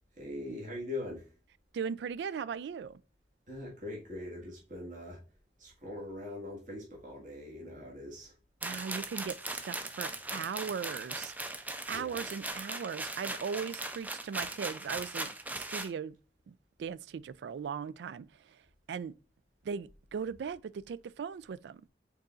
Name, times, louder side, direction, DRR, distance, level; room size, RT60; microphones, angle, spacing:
voice 1, 0.1-1.3 3.5-5.2 5.6-8.3 11.9-12.2, left 1 dB, 45° right, 1.7 m, -42 dB
voice 2, 1.7-3.0 8.6-11.3 11.9-16.1 16.5-18.6 18.9-19.1 19.6-21.8, right 6 dB, 80° right, 0.3 m, -38 dB
sound 1, 8.6-15.9, right 2 dB, 10° right, 0.4 m, -39 dB
5.4 x 4.0 x 2.4 m
head